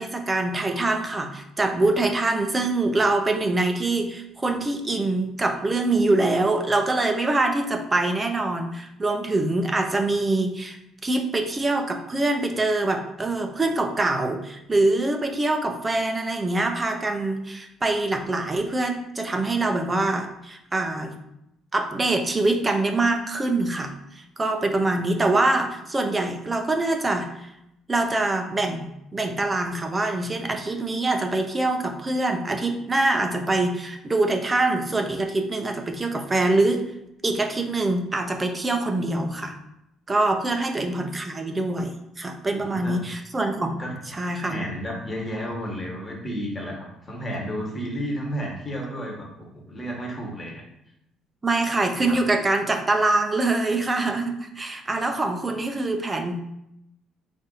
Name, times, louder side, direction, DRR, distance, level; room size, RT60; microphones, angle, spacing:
voice 1, 0.0-21.2 21.7-27.5 27.9-36.8 37.2-39.5 40.1-43.8 44.1-44.6 51.4-56.6, right 2 dB, 25° right, 5 dB, 0.5 m, -24 dB
voice 2, 42.6-42.9 43.7-43.9 44.4-49.3 49.5-50.6 52.1-52.2, equal, 25° left, -1 dB, 1.3 m, -32 dB
3.9 x 2.6 x 3.9 m, 0.81 s
supercardioid pair, 85°, 0 cm